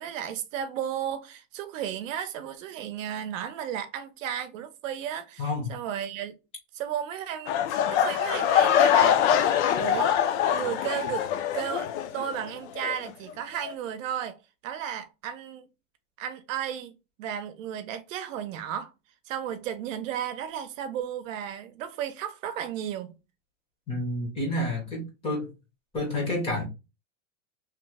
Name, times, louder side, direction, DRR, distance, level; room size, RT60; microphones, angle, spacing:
voice 1, 0.0-6.3 6.7-7.5 7.9-10.1 10.5-11.9 12.1-14.4 14.6-15.7 16.2-16.9 17.2-18.9 19.3-23.2, right 9 dB, 80° right, 0.7 m, -34 dB
voice 2, 5.4-5.7 23.9-25.5 25.9-26.6, left 1 dB, 15° left, 0.6 m, -29 dB
sound 1, 7.5-12.5 12.8-13.1 13.6-13.7, left 9 dB, 60° left, 0.5 m, -24 dB
3.0 x 2.0 x 3.3 m
supercardioid pair, 175°, 39 cm